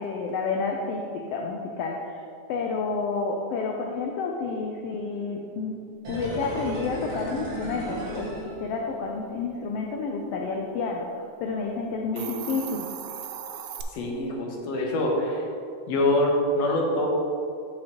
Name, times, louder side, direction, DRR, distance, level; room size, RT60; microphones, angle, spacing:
voice 1, 0.0-5.7 6.1-12.9, left 4 dB, 85° left, 1 dB, 1.4 m, -30 dB
sound 1, 6.0-9.2 9.5-9.6, right 1 dB, 50° right, 2.6 m, -35 dB
Hiss, 12.0-13.8, right 9 dB, 85° right, 2.0 m, -37 dB
voice 2, 13.9-15.5 15.9-17.1, left 1 dB, 65° left, -1 dB, 2.0 m, -25 dB
8.7 x 6.3 x 2.9 m, 2.4 s
omnidirectional pair, 3.4 m